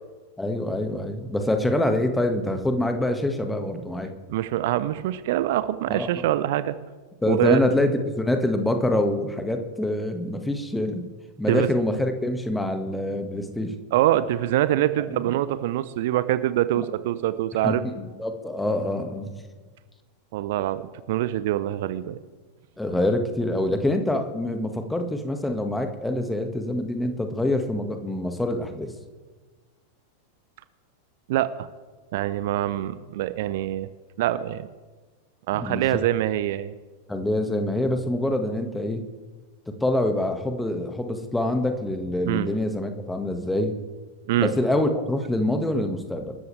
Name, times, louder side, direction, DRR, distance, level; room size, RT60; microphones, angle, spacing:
voice 1, 0.4-4.1 5.9-6.3 7.2-11.1 11.4-13.8 15.1-15.2 16.8-16.9 17.6-19.3 22.8-28.9 35.5-35.8 37.1-39.0 39.8-43.7 44.4-46.4, left 1 dB, 5° left, 6 dB, 1.7 m, -25 dB
voice 2, 4.3-6.7 7.2-7.6 11.5-11.7 13.9-17.8 20.3-20.8 21.1-22.2 31.3-31.7 32.1-33.9 34.2-34.7 35.5-36.7 42.3-42.5 44.3-44.5, right 13 dB, 50° right, 14 dB, 0.7 m, -24 dB
26.5 x 13.5 x 3.4 m, 1.3 s
figure-of-eight pair, 90°, 0 cm